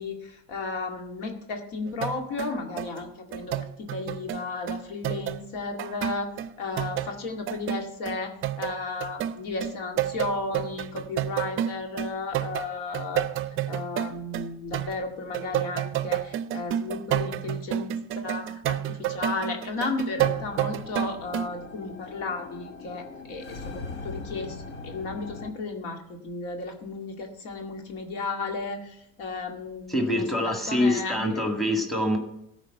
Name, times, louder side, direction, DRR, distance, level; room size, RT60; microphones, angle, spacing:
voice 1, 0.0-13.3 13.7-24.6 24.8-31.4, left 3 dB, 65° left, 3 dB, 2.1 m, -34 dB
sound 1, 1.9-5.4 5.8-7.2 7.5-15.0 15.3-21.5, right 11 dB, 35° right, 0.5 m, -30 dB
sound 2, 20.2-25.5, left 3 dB, 90° left, 1.4 m, -41 dB
voice 2, 29.9-32.2, left 1 dB, ahead, 3 dB, 1.8 m, -25 dB
13.5 x 4.9 x 7.8 m, 0.80 s
supercardioid pair, 115°, 35 cm